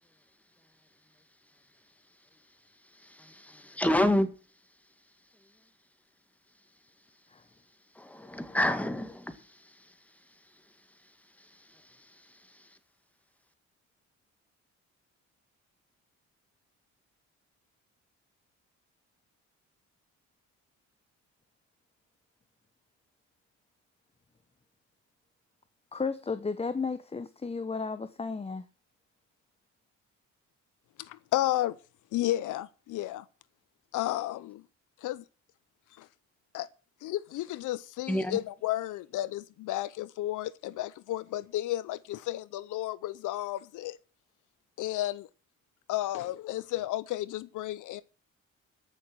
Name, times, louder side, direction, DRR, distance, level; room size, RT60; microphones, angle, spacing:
voice 1, 2.9-4.3 8.0-9.9 11.4-12.8 38.1-38.4, left 1 dB, 5° left, 2.0 m, -30 dB
voice 2, 25.9-28.6, left 4 dB, 20° left, 0.9 m, -33 dB
voice 3, 31.0-31.8 32.1-33.2 33.9-34.6 35.0-35.2 36.0-36.1 36.5-36.7 37.0-44.0 44.8-45.3 45.9-48.0, left 14 dB, 80° left, 0.7 m, -32 dB
14.0 x 6.6 x 7.8 m
cardioid pair, 90°, 30 cm